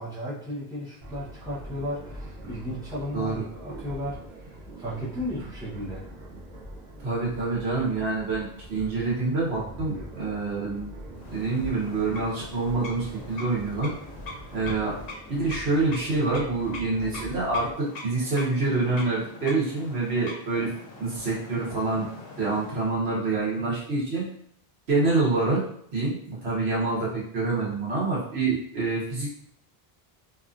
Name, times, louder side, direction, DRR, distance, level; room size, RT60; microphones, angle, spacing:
voice 1, 0.0-6.1, equal, 5° right, -9 dB, 0.8 m, -35 dB
sound 1, 1.0-17.7, right 1 dB, 45° right, 0.7 m, -43 dB
voice 2, 7.0-10.9 11.3-13.9 14.5-14.9 15.3-20.7 21.0-22.0 22.4-24.3 24.9-25.6 25.9-29.4, right 3 dB, 90° right, -5 dB, 1.3 m, -26 dB
sound 2, 11.1-23.0, left 2 dB, 70° left, 0.8 m, -43 dB
2.8 x 2.4 x 2.5 m, 0.67 s
omnidirectional pair, 1.0 m